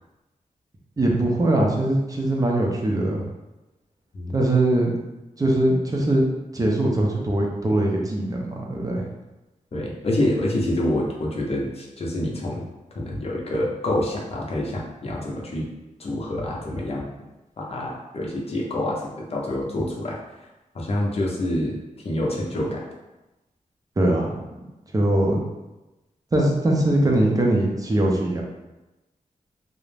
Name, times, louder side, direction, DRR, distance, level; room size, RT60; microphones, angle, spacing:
voice 1, 1.0-3.2 4.3-4.9 5.4-6.2 6.5-9.0 24.0-24.3 24.9-25.4 26.3-28.4, right 1 dB, 25° right, -1 dB, 0.5 m, -21 dB
voice 2, 9.7-12.6 12.9-15.7 16.0-17.1 17.6-20.2 20.7-21.8 22.0-22.8, left 1 dB, 45° left, -3 dB, 0.6 m, -27 dB
2.4 x 2.0 x 3.2 m, 1.0 s
wide cardioid pair, 125°, 14 cm